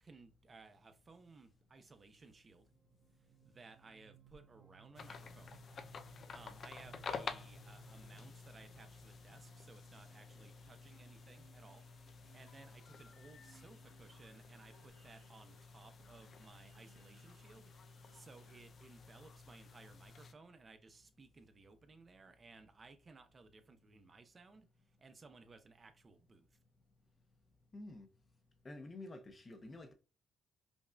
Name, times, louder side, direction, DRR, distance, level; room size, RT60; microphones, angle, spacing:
voice 1, 0.0-2.7 3.2-5.6 6.1-11.8 12.1-26.6, right 3 dB, 35° right, 0.6 m, -60 dB
sound 1, 1.9-18.7, right 7 dB, 80° right, 1.9 m, -67 dB
sound 2, 4.9-20.3, left 5 dB, 50° left, 0.4 m, -51 dB
voice 2, 27.7-28.1 28.6-29.9, left 2 dB, 30° left, 0.7 m, -49 dB
5.2 x 2.4 x 2.2 m
cardioid pair, 90°, 0 cm